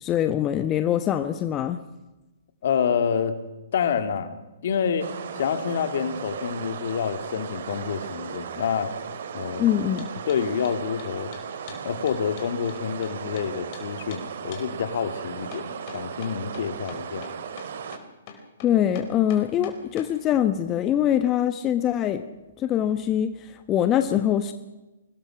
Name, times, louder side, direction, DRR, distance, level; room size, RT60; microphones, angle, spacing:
voice 1, 0.0-1.8 9.6-10.1 18.6-22.2 22.6-24.5, left 10 dB, 25° left, 9 dB, 1.1 m, -23 dB
voice 2, 2.6-3.4 3.7-4.3 4.6-5.1 5.4-8.9 9.3-9.8 10.2-11.3 11.8-17.3, left 7 dB, 60° left, 9 dB, 2.5 m, -27 dB
sound 1, 5.0-18.0, right 7 dB, 60° right, 2.6 m, -36 dB
sound 2, 10.0-10.4 10.6-13.5 13.7-13.8 14.1-14.2 14.5-14.7 15.5-20.1, left 8 dB, 40° left, 4.9 m, -44 dB
25.0 x 20.5 x 6.1 m, 1.0 s
hypercardioid pair, 125°, 0 cm